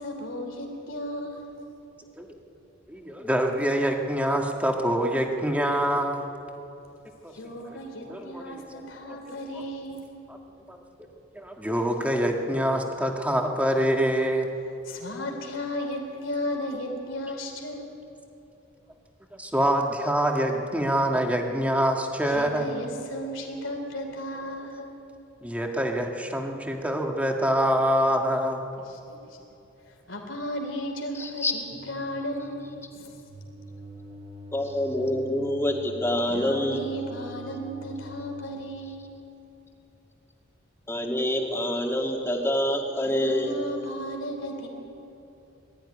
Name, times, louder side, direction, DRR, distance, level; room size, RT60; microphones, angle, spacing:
voice 1, 0.0-1.6 7.3-10.1 14.8-17.9 22.2-24.9 28.9-29.4 29.8-33.1 36.3-39.1 43.0-44.7, equal, 70° left, 2 dB, 3.4 m, -35 dB
voice 2, 2.9-6.3 7.2-7.3 7.6-7.8 8.1-8.8 9.3-9.4 10.7-10.8 11.3-14.5 19.3-22.7 25.4-28.6, equal, 5° right, 2 dB, 1.7 m, -25 dB
voice 3, 31.2-31.5 34.5-36.8 40.9-43.5, left 1 dB, 15° left, 1 dB, 2.1 m, -26 dB
sound 1, 31.6-38.3, equal, 30° right, 2.9 m, -44 dB
21.0 x 13.5 x 9.9 m, 2.9 s
head